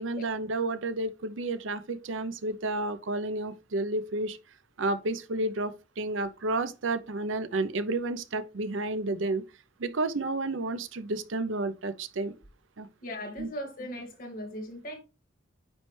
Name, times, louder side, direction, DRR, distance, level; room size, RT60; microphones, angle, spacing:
voice 1, 0.0-4.4 4.8-9.4 9.8-12.3 12.8-12.9 13.4-13.5, right 2 dB, 70° right, 0.6 m, -31 dB
voice 2, 13.0-15.0, equal, 45° left, 1.8 m, -38 dB
9.5 x 3.3 x 3.2 m
head